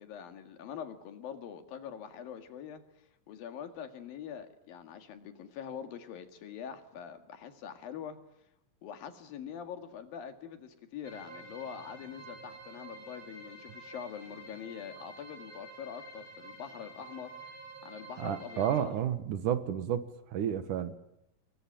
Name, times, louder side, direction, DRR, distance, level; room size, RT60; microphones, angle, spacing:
voice 1, 0.0-2.8 3.3-8.2 8.8-17.3 17.8-19.0, left 8 dB, 80° left, 3.8 m, -44 dB
sound 1, 11.0-18.8, right 2 dB, 35° right, 5.3 m, -49 dB
voice 2, 18.2-20.9, right 9 dB, 70° right, 2.8 m, -31 dB
28.5 x 22.5 x 9.0 m
omnidirectional pair, 4.1 m